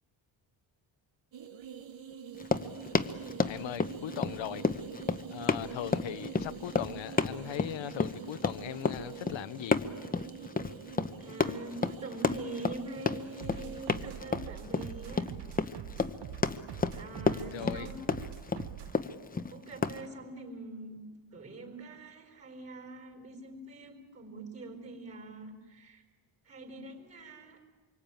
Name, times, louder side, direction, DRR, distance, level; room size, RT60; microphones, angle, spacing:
sound 1, 1.3-14.2, right 7 dB, 80° right, 1.7 m, -46 dB
Run, 2.3-20.0, left 4 dB, 20° left, 0.8 m, -31 dB
voice 1, 3.4-4.6 5.3-9.8 17.5-17.9, left 12 dB, 85° left, 1.0 m, -39 dB
voice 2, 11.2-15.3 16.9-18.1 19.5-21.0 21.3-26.0 26.4-27.6, right 2 dB, 35° right, 4.6 m, -44 dB
sound 2, 13.4-19.0, right 11 dB, 60° right, 0.8 m, -44 dB
26.5 x 24.0 x 9.0 m
wide cardioid pair, 150°, 45 cm